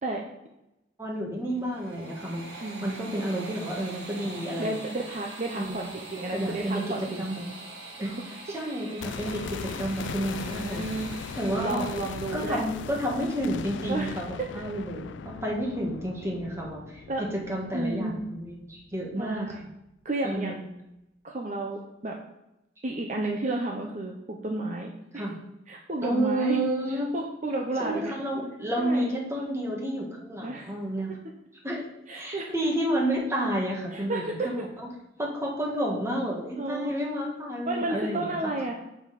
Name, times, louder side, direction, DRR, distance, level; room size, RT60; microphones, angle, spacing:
voice 1, 1.0-4.8 5.5-5.8 6.3-7.4 8.0-8.1 8.5-10.8 11.3-11.8 12.3-14.3 14.5-15.1 15.4-19.7 20.2-20.6 25.1-25.4 26.0-27.1 27.8-31.2 31.6-31.8 32.1-34.2 34.5-34.7 35.2-38.5, right 1 dB, 15° right, -2 dB, 1.7 m, -30 dB
sound 1, 1.5-12.6, right 2 dB, 80° right, 1.6 m, -44 dB
voice 2, 2.6-3.0 4.6-7.5 8.0-8.3 10.3-11.1 11.5-12.6 13.9-14.6 17.1-17.3 17.7-18.2 19.2-19.6 20.0-20.5 21.2-22.2 22.8-25.2 25.7-26.6 27.1-28.1 28.8-29.1 30.4-30.7 32.1-32.5 33.9-34.7 36.6-37.1 37.6-38.7, right 2 dB, 40° right, 1 dB, 0.8 m, -32 dB
sound 2, 9.0-19.0 19.3-19.4, left 6 dB, 80° left, 0.4 m, -39 dB
7.2 x 5.8 x 5.9 m, 0.88 s
head